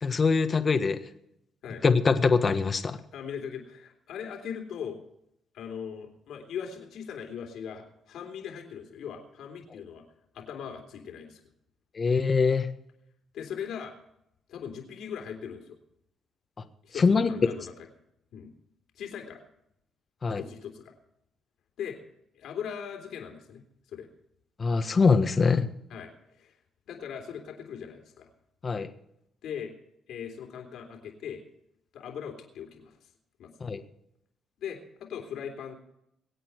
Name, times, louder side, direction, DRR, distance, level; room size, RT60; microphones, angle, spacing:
voice 1, 0.0-1.0 1.8-3.0 11.9-12.7 17.0-17.3 20.2-20.4 24.6-25.7 28.6-28.9 33.6-33.8, left 4 dB, 35° left, 8 dB, 1.4 m, -23 dB
voice 2, 3.1-5.0 5.5-10.0 10.3-11.4 13.3-13.9 14.5-15.8 16.8-17.9 18.3-18.5 18.9-19.4 20.4-20.9 21.8-22.0 22.3-23.6 23.9-24.1 25.9-26.6 26.9-28.3 29.4-29.7 30.1-31.4 31.9-33.1 33.4-33.5 34.6-35.7, left 8 dB, 80° left, 3 dB, 3.4 m, -39 dB
23.5 x 8.8 x 4.7 m, 0.77 s
cardioid pair, 90°, 0 cm